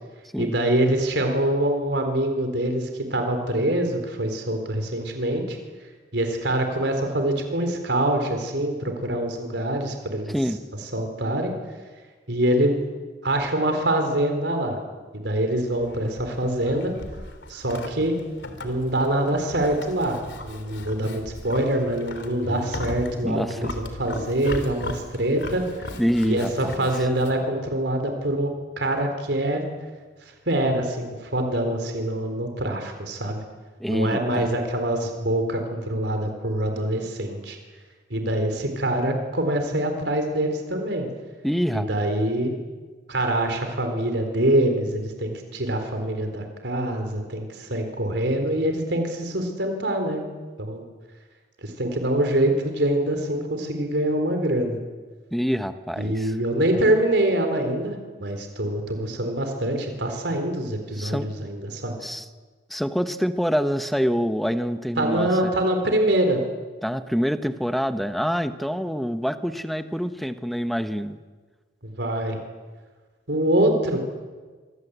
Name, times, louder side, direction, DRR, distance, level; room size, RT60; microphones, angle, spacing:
voice 1, 0.4-5.6 6.1-10.4 10.9-11.5 12.3-12.8 13.2-14.8 15.1-16.9 17.5-18.2 18.6-25.6 26.2-28.5 28.8-29.6 30.5-33.4 33.9-37.6 38.1-41.1 41.7-42.5 43.1-50.2 50.6-50.8 51.6-54.8 56.0-62.0 65.0-66.4 71.8-72.4 73.3-74.1, right 1 dB, 85° right, 5 dB, 4.1 m, -24 dB
voice 2, 10.3-10.6 23.2-23.7 26.0-26.9 33.8-34.5 41.4-42.1 55.3-56.3 60.9-61.3 62.0-62.3 62.7-65.5 66.8-71.2, equal, ahead, 9 dB, 1.1 m, -26 dB
Livestock farm animals working animals, 15.7-27.4, left 1 dB, 90° left, 3.3 m, -38 dB
Piano, 22.4-30.5, left 1 dB, 25° left, 3.1 m, -45 dB
26.0 x 25.0 x 8.2 m, 1.4 s
head